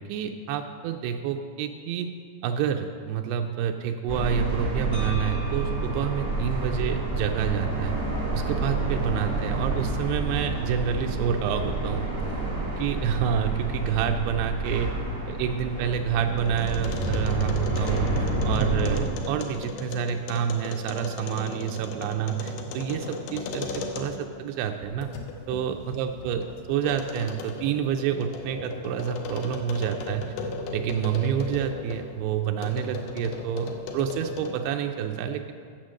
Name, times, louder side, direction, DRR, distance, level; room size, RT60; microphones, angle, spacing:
voice 1, 0.1-2.1 2.4-8.0 8.3-12.1 12.8-14.9 15.3-25.1 25.5-30.3 30.7-35.5, right 9 dB, 85° right, 5 dB, 2.6 m, -28 dB
sound 1, 4.1-19.0, right 2 dB, 35° right, 0.9 m, -29 dB
sound 2, 4.9-9.0, right 1 dB, 20° left, 0.3 m, -45 dB
sound 3, 15.4-24.4 24.8-32.1 32.6-34.7, left 4 dB, 75° left, 2.7 m, -37 dB
8.8 x 8.1 x 6.3 m, 2.2 s
omnidirectional pair, 4.8 m